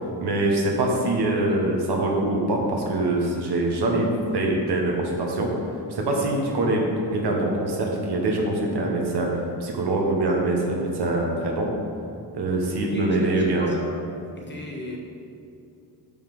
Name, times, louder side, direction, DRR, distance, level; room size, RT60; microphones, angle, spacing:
voice 1, 0.2-5.5 5.9-9.3 9.6-11.7 12.3-13.8, right 2 dB, 65° right, 0 dB, 1.4 m, -24 dB
voice 2, 1.3-1.7 12.8-14.1 14.3-15.0, left 1 dB, 25° left, -1 dB, 1.2 m, -37 dB
5.7 x 5.4 x 5.3 m, 2.5 s
cardioid pair, 85°, 43 cm